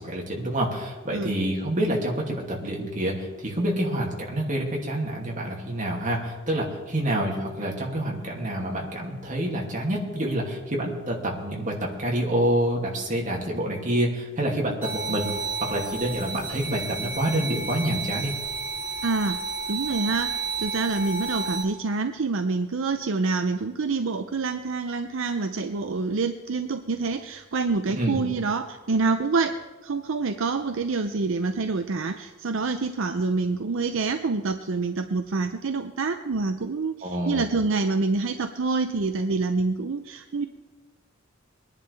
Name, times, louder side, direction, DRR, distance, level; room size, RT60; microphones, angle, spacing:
voice 1, 0.0-15.3 15.6-18.3 28.0-28.2 37.0-37.4, right 1 dB, 40° right, -2 dB, 2.5 m, -27 dB
sound 1, 14.8-21.6, right 4 dB, 10° right, 3.8 m, -32 dB
voice 2, 19.0-19.4 19.7-20.3 20.6-40.5, right 4 dB, 70° right, 8 dB, 0.6 m, -27 dB
22.5 x 10.5 x 3.4 m, 1.3 s
head